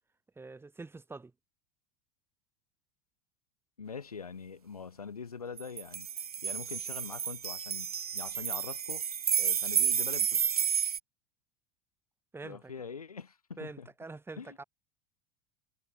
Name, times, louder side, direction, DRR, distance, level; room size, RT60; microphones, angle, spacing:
voice 1, 0.4-1.3 12.3-12.7 13.6-14.6, right 3 dB, 10° right, 2.4 m, -45 dB
voice 2, 3.8-6.1 6.4-9.0 9.4-10.4 12.4-13.9 14.4-14.6, left 5 dB, 85° left, 2.5 m, -43 dB
sound 1, 5.6-11.0, right 8 dB, 85° right, 0.7 m, -31 dB
figure-of-eight pair, 75°, 19 cm